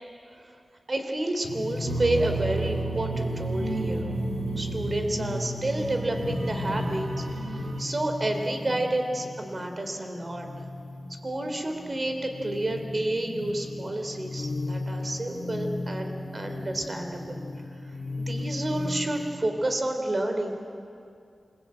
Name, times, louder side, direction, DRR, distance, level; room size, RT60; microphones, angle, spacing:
voice 1, 0.9-4.2 4.6-7.3 7.5-10.5 11.2-17.4 18.2-20.6, right 1 dB, 40° right, 5 dB, 3.5 m, -30 dB
sound 1, 1.4-19.5, left 2 dB, 85° left, 2.6 m, -35 dB
sound 2, 1.9-7.8, right 3 dB, 75° right, 3.7 m, -32 dB
27.5 x 22.0 x 8.7 m, 2.5 s
wide cardioid pair, 65°, 0 cm